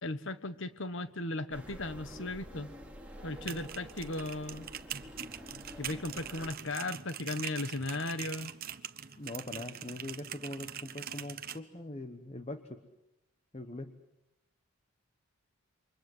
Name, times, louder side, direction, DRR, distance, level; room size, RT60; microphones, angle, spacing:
voice 1, 0.0-2.7 3.2-4.7 5.8-8.5, left 2 dB, 55° left, 12 dB, 1.3 m, -36 dB
sound 1, 1.5-6.5, equal, 5° right, 3.0 m, -48 dB
sound 2, 3.3-11.6, right 9 dB, 45° right, 1.0 m, -43 dB
voice 2, 9.2-12.8 13.5-13.9, left 1 dB, 30° left, 9 dB, 1.1 m, -42 dB
28.5 x 24.5 x 7.9 m, 0.91 s
head